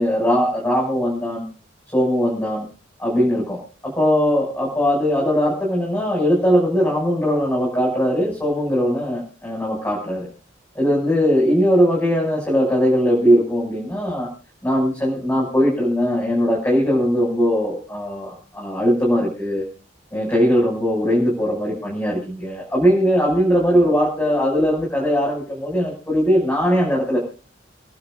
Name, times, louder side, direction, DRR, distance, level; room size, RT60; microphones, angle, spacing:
voice 1, 0.0-1.4 1.9-2.6 3.0-3.6 3.8-10.3 10.7-14.3 14.6-19.6 20.1-27.2, equal, 10° left, -5 dB, 6.6 m, -20 dB
30.0 x 11.5 x 2.5 m, 0.38 s
head